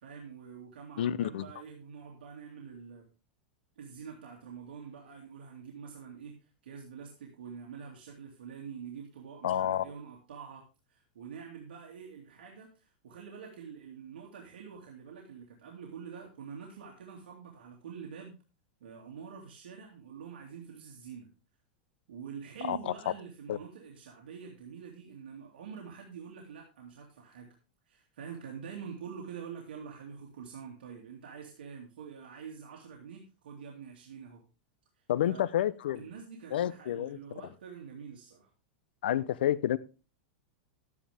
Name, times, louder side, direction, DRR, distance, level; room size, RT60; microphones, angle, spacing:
voice 1, 0.0-3.0 3.8-18.4 18.8-21.3 22.1-27.5 27.9-34.4 35.3-35.5 36.0-38.5, right 6 dB, 85° right, 2.6 m, -46 dB
voice 2, 1.0-1.5 9.4-9.9 22.6-22.9 23.5-23.6 35.1-36.0 36.5-37.2 39.0-39.8, left 11 dB, 80° left, 0.8 m, -29 dB
12.5 x 9.8 x 3.5 m
supercardioid pair, 140°, 5 cm